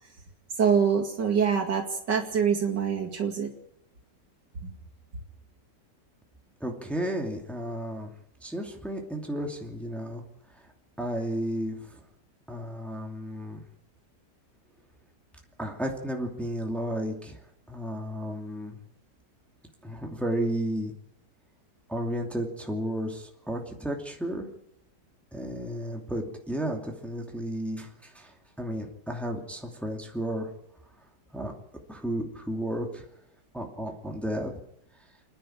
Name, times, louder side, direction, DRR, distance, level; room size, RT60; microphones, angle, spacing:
voice 1, 0.6-3.5 4.6-4.7, right 7 dB, 80° right, 0 dB, 2.9 m, -25 dB
voice 2, 6.6-8.1 8.4-10.2 10.5-10.6 11.0-12.0 12.5-13.6 15.6-17.4 17.7-18.8 19.8-20.9 21.9-24.5 25.3-30.5 31.3-31.5 31.9-33.0 33.5-34.5, equal, ahead, 1 dB, 2.6 m, -33 dB
30.0 x 10.0 x 8.8 m, 0.80 s
omnidirectional pair, 1.8 m